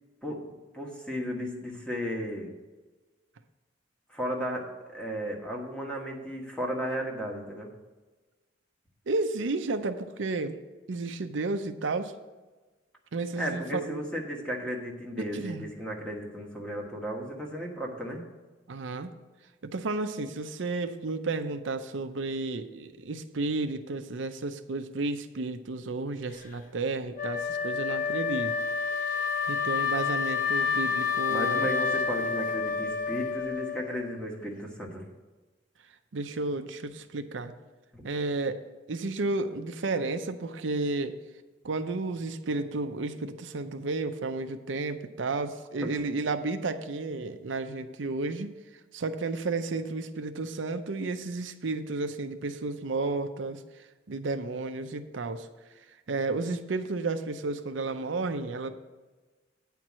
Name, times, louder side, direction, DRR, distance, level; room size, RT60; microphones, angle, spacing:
voice 1, 0.2-2.5 4.1-7.7 13.4-18.2 31.3-35.1 37.9-38.0 45.8-45.9, equal, 5° left, -1 dB, 1.5 m, -34 dB
voice 2, 9.1-10.6 10.9-12.1 13.1-14.0 15.2-15.6 18.7-19.1 19.7-28.6 29.0-31.7 36.1-37.5 38.0-38.6 38.9-41.1 41.6-48.5 48.9-53.6 54.1-55.5 56.1-58.7, right 3 dB, 85° right, 8 dB, 0.6 m, -32 dB
Wind instrument woodwind instrument, 27.2-34.2, left 5 dB, 45° left, 0.8 m, -29 dB
9.1 x 4.6 x 7.4 m, 1.2 s
head